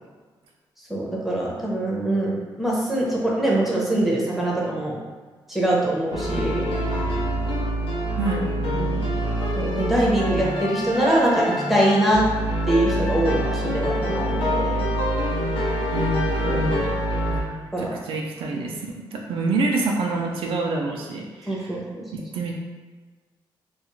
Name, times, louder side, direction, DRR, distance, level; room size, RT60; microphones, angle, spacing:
voice 1, 0.9-5.0 5.5-6.6 8.7-9.0 9.6-12.3 12.7-14.8 16.4-16.6 17.7-17.9 21.5-22.0, right 1 dB, ahead, -4 dB, 0.6 m, -23 dB
sound 1, 6.1-17.4, equal, 85° left, 0.6 m, -25 dB
voice 2, 8.2-8.5 15.3-16.8 17.3-21.8 22.1-22.6, right 2 dB, 85° right, 0 dB, 0.4 m, -27 dB
2.4 x 2.3 x 3.0 m, 1.4 s
cardioid pair, 115°, 9 cm